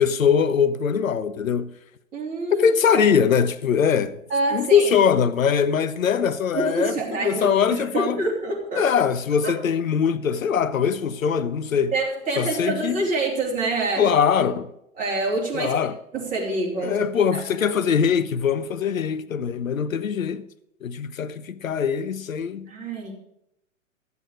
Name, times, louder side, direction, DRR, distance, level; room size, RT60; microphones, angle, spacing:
voice 1, 0.0-1.8 2.5-4.2 4.5-7.0 7.2-8.2 8.8-11.9 12.4-13.1 14.0-14.7 15.5-16.0 16.8-20.5 20.8-22.7, left 7 dB, 80° left, 0.7 m, -22 dB
voice 2, 2.1-3.1 4.3-4.9 6.5-8.8 9.4-9.5 11.9-14.1 14.4-14.5 15.0-15.8 16.1-17.0 17.3-17.4 22.7-23.1, right 2 dB, 20° right, 3.2 m, -26 dB
12.5 x 8.2 x 4.8 m
hypercardioid pair, 125°, 40 cm